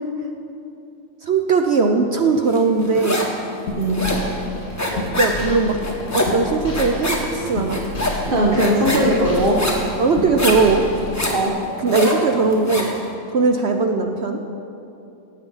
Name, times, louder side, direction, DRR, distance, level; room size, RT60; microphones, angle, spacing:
voice 1, 1.3-3.2 5.1-7.8 8.4-8.7 10.0-10.8 11.8-12.9 13.3-14.4, right 4 dB, 70° right, 4 dB, 0.6 m, -19 dB
sound 1, 2.5-3.4 3.7-13.0, left 1 dB, 10° left, 1.3 m, -25 dB
sound 2, 3.7-11.5, left 2 dB, 45° left, 2.2 m, -30 dB
voice 2, 3.7-4.1 8.2-9.6 11.3-11.5, right 1 dB, 35° right, -3 dB, 1.1 m, -19 dB
18.0 x 8.1 x 5.6 m, 2.8 s
omnidirectional pair, 2.0 m